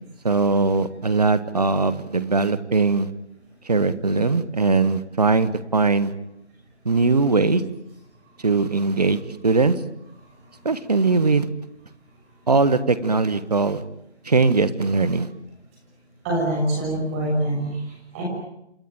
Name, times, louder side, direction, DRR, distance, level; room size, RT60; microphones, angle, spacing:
voice 1, 0.2-3.1 3.6-6.1 6.8-7.6 8.4-9.8 10.6-11.5 12.5-13.8 14.2-15.3, right 3 dB, 35° right, 14 dB, 1.5 m, -20 dB
voice 2, 16.2-18.2, right 1 dB, 10° right, -2 dB, 6.1 m, -25 dB
28.0 x 21.5 x 9.0 m, 0.83 s
figure-of-eight pair, 160°, 34 cm